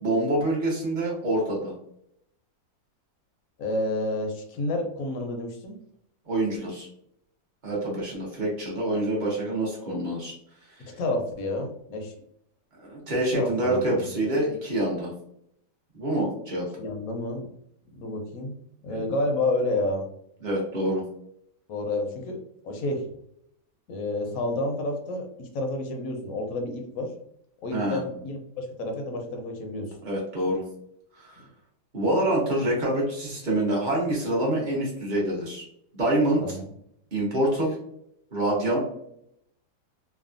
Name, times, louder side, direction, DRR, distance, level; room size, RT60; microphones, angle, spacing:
voice 1, 0.0-1.7 6.3-6.9 7.6-10.3 12.8-15.1 16.0-16.6 18.9-19.0 20.4-21.0 27.7-28.0 30.0-30.6 31.2-31.4 31.9-35.6 35.9-36.6 37.1-37.8 38.3-38.8, right 1 dB, 35° right, -4 dB, 0.8 m, -26 dB
voice 2, 3.6-5.8 10.8-12.1 13.3-13.8 16.8-17.5 18.0-18.5 18.8-20.1 21.7-22.4 22.6-23.1 23.9-27.1 27.6-29.9 36.4-36.7, left 2 dB, 65° left, 3 dB, 0.9 m, -30 dB
3.2 x 2.1 x 2.4 m, 0.73 s
omnidirectional pair, 1.8 m